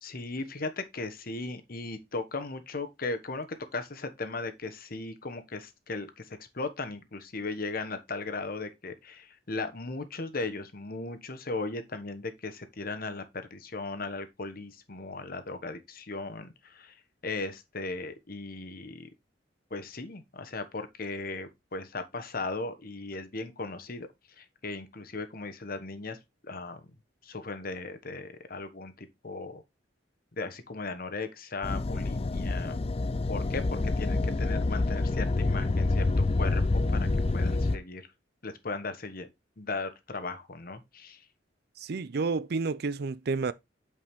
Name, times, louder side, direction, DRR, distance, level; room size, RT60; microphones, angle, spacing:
voice 1, 0.0-3.5 3.7-16.9 17.2-19.1 19.7-24.1 24.4-26.2 26.4-26.8 27.2-29.6 30.4-32.7 33.3-36.1 36.4-37.1 37.3-38.1 38.4-39.3 39.6-41.2, left 3 dB, 55° left, 1.2 m, -37 dB
sound 1, 31.6-37.8, left 2 dB, 35° left, 0.5 m, -27 dB
voice 2, 41.8-43.5, right 4 dB, 60° right, 0.5 m, -30 dB
8.7 x 5.0 x 3.6 m
head